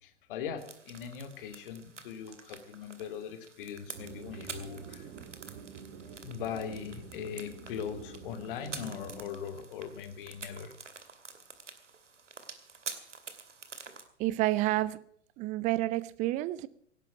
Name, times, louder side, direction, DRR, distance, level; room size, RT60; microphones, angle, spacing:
voice 1, 0.0-5.1 6.2-10.7, left 7 dB, 45° left, 9 dB, 2.6 m, -40 dB
sound 1, 0.6-14.0, right 4 dB, 80° right, 2.5 m, -48 dB
sound 2, 3.9-9.3, right 5 dB, 40° right, 2.2 m, -47 dB
voice 2, 14.2-15.0 15.4-16.7, right 17 dB, 20° right, 19 dB, 0.6 m, -29 dB
17.5 x 11.5 x 6.0 m, 0.66 s
figure-of-eight pair, 115°, 36 cm